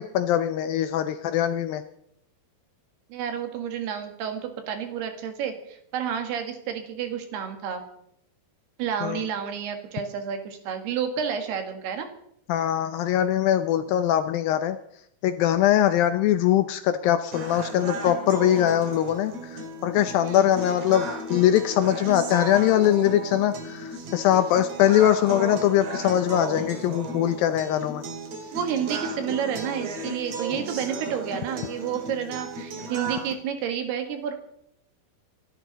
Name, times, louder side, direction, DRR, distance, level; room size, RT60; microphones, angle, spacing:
voice 1, 0.0-1.8 9.0-9.2 12.5-14.8 15.2-28.0, left 11 dB, 80° left, 10 dB, 2.2 m, -22 dB
voice 2, 3.1-7.8 8.8-12.1 20.2-20.4 28.5-34.3, right 8 dB, 75° right, 6 dB, 3.7 m, -30 dB
sound 1, 17.3-33.3, right 2 dB, 45° right, 2.9 m, -35 dB
27.0 x 12.0 x 4.1 m, 0.75 s
omnidirectional pair, 4.7 m